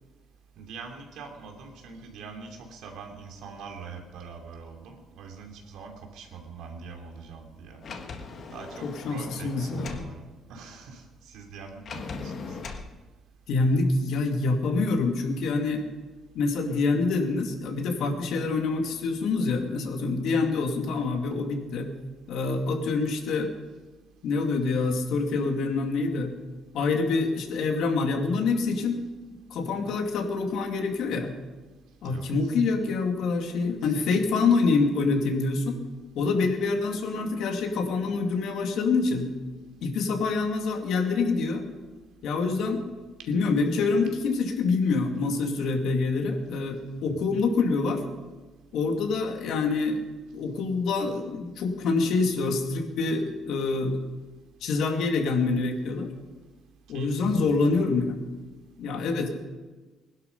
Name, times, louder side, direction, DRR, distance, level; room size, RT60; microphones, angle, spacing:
voice 1, 0.6-7.8 8.5-10.2 10.5-12.6 32.0-32.5 33.8-34.1 47.0-47.2 56.9-57.7, right 5 dB, 70° right, 3 dB, 2.8 m, -44 dB
Sliding door, 7.8-10.1 11.8-12.9, left 4 dB, 40° left, 1.4 m, -39 dB
voice 2, 8.8-10.1 13.5-15.8 16.3-21.9 22.3-23.5 24.2-26.3 26.7-29.0 29.5-31.3 32.0-35.8 36.1-39.3 39.8-41.7 42.2-42.9 43.3-48.0 48.7-50.0 50.3-54.0 54.6-56.1 56.9-58.2 58.8-59.3, left 4 dB, 65° left, 3 dB, 2.3 m, -26 dB
20.5 x 11.5 x 5.4 m, 1.2 s
cardioid pair, 170°, 0 cm